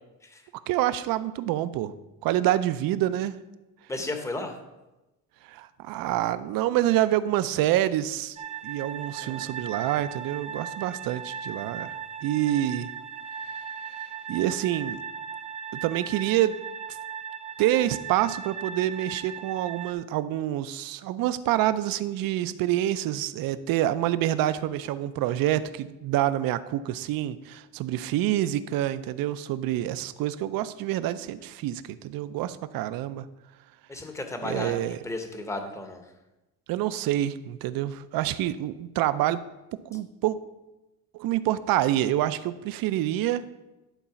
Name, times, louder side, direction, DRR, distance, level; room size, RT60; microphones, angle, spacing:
voice 1, 0.7-1.9 2.2-3.3 5.5-8.4 8.6-11.9 12.2-12.9 14.3-15.0 15.7-16.6 17.6-33.3 34.4-35.0 36.7-39.4 39.9-40.4 41.1-43.5, right 13 dB, 65° right, 14 dB, 0.5 m, -27 dB
voice 2, 3.9-4.6 9.2-9.5 33.9-36.0, left 2 dB, 10° left, 5 dB, 0.7 m, -34 dB
sound 1, 8.4-19.9, right 7 dB, 20° right, 0.3 m, -38 dB
11.5 x 4.0 x 5.7 m, 1.0 s
cardioid pair, 170°, 37 cm